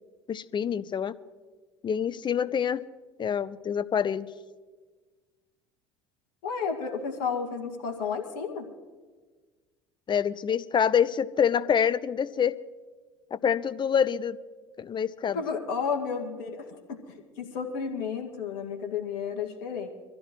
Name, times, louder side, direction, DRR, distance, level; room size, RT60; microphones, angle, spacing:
voice 1, 0.3-1.1 1.8-2.8 3.2-4.3 10.1-12.6 13.3-14.4 14.8-15.4, left 8 dB, 30° left, 16 dB, 0.7 m, -26 dB
voice 2, 6.4-8.7 15.3-19.9, left 6 dB, 65° left, 3 dB, 2.1 m, -32 dB
24.5 x 14.5 x 3.1 m, 1.4 s
hypercardioid pair, 70°, 15 cm